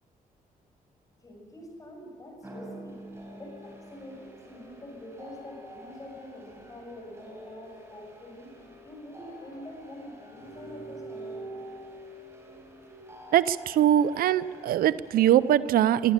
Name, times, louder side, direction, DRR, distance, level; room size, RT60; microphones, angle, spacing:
voice 1, 1.2-3.0 3.3-11.5, left 1 dB, 25° left, 0 dB, 6.9 m, -45 dB
sound 1, 2.4-15.5, right 1 dB, 20° right, 4.7 m, -46 dB
voice 2, 13.3-16.1, right 11 dB, 90° right, 16 dB, 0.6 m, -22 dB
22.0 x 13.0 x 8.9 m, 2.4 s
cardioid pair, 120°, 15 cm